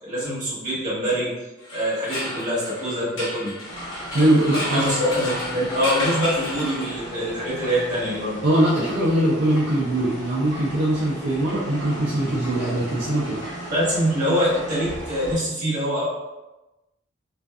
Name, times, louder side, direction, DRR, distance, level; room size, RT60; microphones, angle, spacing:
voice 1, 0.0-1.3 1.7-3.5 4.7-8.4 13.7-16.0, equal, 40° right, -9 dB, 1.2 m, -24 dB
sound 1, 1.6-7.3, left 1 dB, 85° left, 0.9 m, -32 dB
sound 2, 3.6-15.4, right 1 dB, 35° left, 1.1 m, -37 dB
voice 2, 4.1-4.9 8.4-13.4, right 1 dB, 60° right, -8 dB, 0.5 m, -21 dB
2.5 x 2.4 x 2.3 m, 1.0 s
head